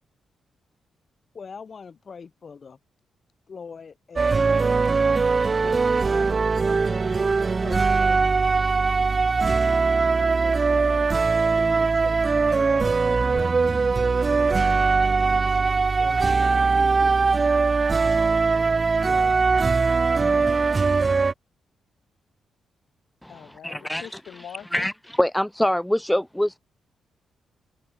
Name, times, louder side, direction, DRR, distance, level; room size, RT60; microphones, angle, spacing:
voice 1, 1.3-2.8 3.5-4.7 5.6-7.0 7.6-9.3 10.2-14.2 15.2-17.4 18.9-19.4, left 5 dB, 45° left, 2.7 m, -43 dB
sound 1, 4.2-21.3, right 4 dB, 35° right, 0.3 m, -21 dB
voice 2, 15.0-15.4 23.3-24.9, left 9 dB, 70° left, 2.1 m, -44 dB
voice 3, 23.6-24.0 24.7-24.9 25.2-26.6, left 1 dB, 5° left, 0.7 m, -23 dB
cardioid pair, 75°, 0 cm